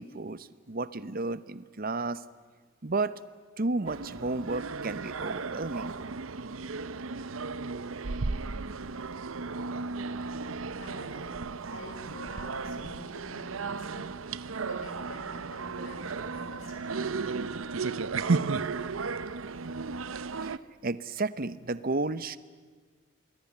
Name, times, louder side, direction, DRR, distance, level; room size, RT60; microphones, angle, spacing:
voice 1, 0.0-2.2 2.8-3.1 3.6-5.9 20.8-22.4, right 3 dB, 45° right, 16 dB, 0.9 m, -32 dB
sound 1, 3.9-20.6, right 4 dB, 90° right, 0.8 m, -34 dB
voice 2, 10.8-11.4 11.7-14.1 14.6-17.6, left 1 dB, 85° left, 5 dB, 5.6 m, -47 dB
27.0 x 21.0 x 9.9 m, 1.5 s
head